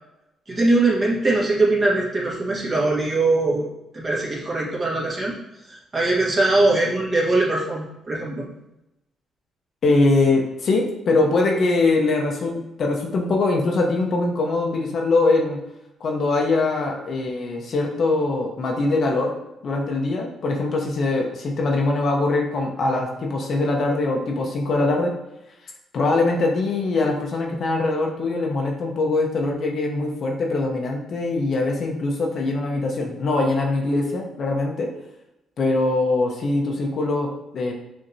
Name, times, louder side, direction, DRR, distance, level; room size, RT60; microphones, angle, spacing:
voice 1, 0.5-3.6 3.9-5.3 5.7-8.4, right 2 dB, 30° right, -4 dB, 1.5 m, -21 dB
voice 2, 9.8-15.6 16.0-19.3 19.6-25.1 25.9-34.9 35.6-37.7, left 2 dB, 55° left, 0 dB, 0.8 m, -22 dB
6.4 x 2.8 x 2.7 m, 0.92 s
cardioid pair, 90°, 0 cm